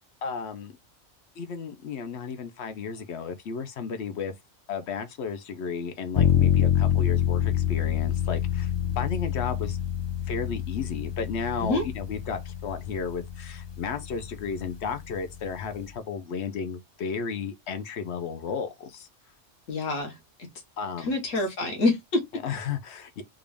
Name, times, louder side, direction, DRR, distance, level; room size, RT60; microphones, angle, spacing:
voice 1, 0.2-0.8 1.4-4.3 4.7-9.8 10.3-19.1 20.8-21.5 22.3-23.2, left 6 dB, 65° left, 0.9 m, -33 dB
sound 1, 6.2-15.9, left 10 dB, 35° left, 0.4 m, -27 dB
voice 2, 19.7-20.1 21.1-22.2, left 2 dB, 85° left, 1.5 m, -26 dB
3.7 x 2.4 x 3.3 m
omnidirectional pair, 1.3 m